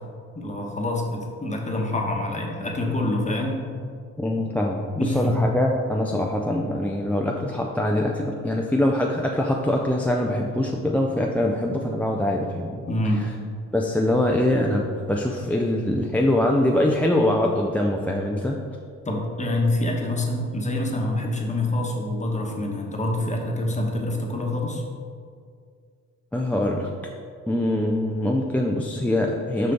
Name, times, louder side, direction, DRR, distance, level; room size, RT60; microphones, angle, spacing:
voice 1, 0.3-3.6 5.0-5.4 12.9-13.3 19.0-24.8, left 1 dB, 25° left, 0 dB, 1.1 m, -26 dB
voice 2, 4.2-12.8 13.7-18.6 26.3-26.9 27.5-29.7, left 1 dB, 5° left, -1 dB, 0.4 m, -23 dB
5.8 x 5.2 x 3.8 m, 2.1 s
cardioid pair, 90°, 30 cm